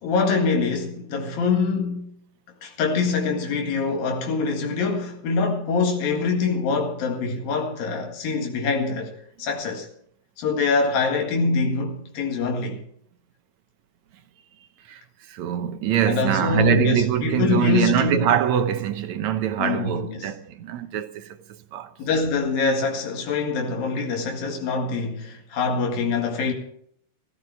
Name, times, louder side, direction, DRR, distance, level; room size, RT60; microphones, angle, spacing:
voice 1, 0.0-2.1 2.6-9.9 10.4-12.8 16.0-18.3 19.6-20.3 22.0-26.5, left 4 dB, 90° left, 3.7 m, -24 dB
voice 2, 15.3-21.4 21.7-21.9, right 10 dB, 70° right, 1.9 m, -23 dB
16.0 x 14.5 x 4.7 m
omnidirectional pair, 4.0 m